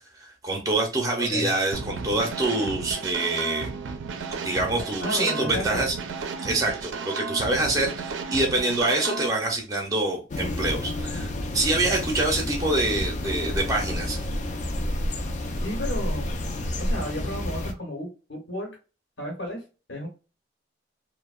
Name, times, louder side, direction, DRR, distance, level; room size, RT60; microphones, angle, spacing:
voice 1, 0.2-3.7 4.3-5.9 6.4-14.2, right 2 dB, 20° right, 0.5 m, -26 dB
voice 2, 1.2-1.5 5.0-5.9 11.8-11.9 15.6-16.4 16.8-18.7 19.2-19.6 19.9-20.1, left 1 dB, 80° left, 1.0 m, -32 dB
sound 1, 1.7-9.3, right 4 dB, 80° right, 0.4 m, -34 dB
sound 2, 10.3-17.7, left 1 dB, 40° left, 0.4 m, -30 dB
2.7 x 2.0 x 2.3 m
head